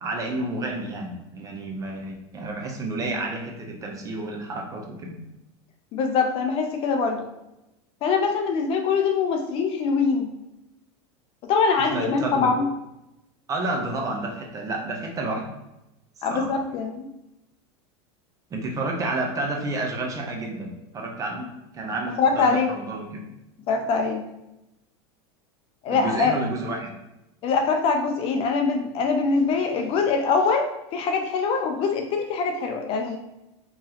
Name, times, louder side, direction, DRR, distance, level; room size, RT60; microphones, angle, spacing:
voice 1, 0.0-5.2 11.9-12.5 13.5-15.5 16.3-16.5 18.5-23.2 25.9-26.9, right 2 dB, 20° right, 1 dB, 0.6 m, -30 dB
voice 2, 5.9-7.3 8.0-10.3 11.4-12.7 16.2-17.1 22.2-22.7 23.7-24.3 25.8-26.3 27.4-33.2, left 4 dB, 40° left, 4 dB, 0.4 m, -23 dB
3.0 x 2.7 x 3.8 m, 0.92 s
supercardioid pair, 140°, 15 cm